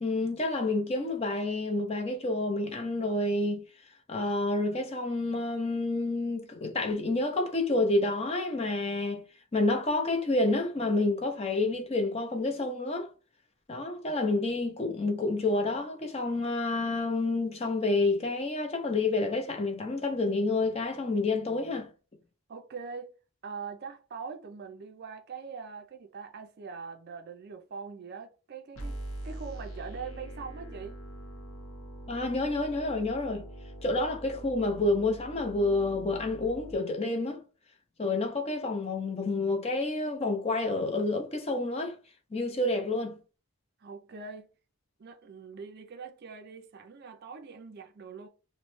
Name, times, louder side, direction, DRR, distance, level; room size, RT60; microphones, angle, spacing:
voice 1, 0.0-3.6 4.1-9.2 9.5-13.1 13.7-21.9 32.1-33.5 33.8-37.4 38.0-42.0 42.3-43.2, left 2 dB, 25° left, 0.5 m, -29 dB
voice 2, 22.5-23.1 23.4-29.0 29.2-31.0 43.8-44.5 45.0-48.3, right 5 dB, 45° right, 0.4 m, -42 dB
sound 1, 28.8-36.8, right 1 dB, 65° left, 0.9 m, -43 dB
3.0 x 2.1 x 3.0 m
head